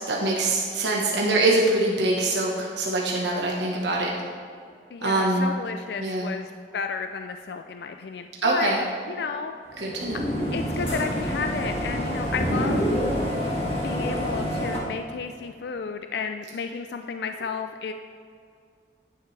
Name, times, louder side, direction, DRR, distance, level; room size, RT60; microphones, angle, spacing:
voice 1, 0.0-4.1 5.0-5.5 6.0-6.3 8.4-8.8 9.8-10.3, right 2 dB, 75° right, -3 dB, 1.2 m, -24 dB
voice 2, 4.9-8.7 9.1-9.5 10.5-12.9 13.8-17.9, left 5 dB, 65° left, 6 dB, 0.4 m, -32 dB
sound 1, 9.7-14.8, equal, 30° left, 1.9 m, -27 dB
11.0 x 9.2 x 3.3 m, 2.3 s
head